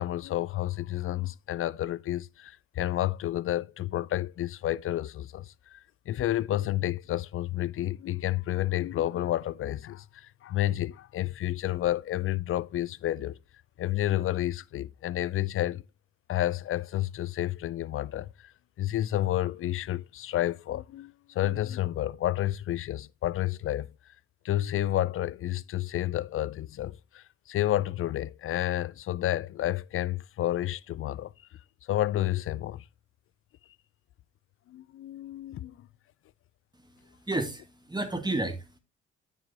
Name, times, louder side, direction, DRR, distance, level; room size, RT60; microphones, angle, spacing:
voice 1, 0.0-13.4 13.8-15.8 16.3-18.5 18.8-23.9 24.4-31.3 31.9-32.8 34.7-35.8, left 13 dB, 45° left, 0.5 m, -30 dB
voice 2, 36.8-38.8, right 2 dB, 15° right, 2.1 m, -32 dB
9.6 x 8.8 x 2.8 m
hypercardioid pair, 50°, 31 cm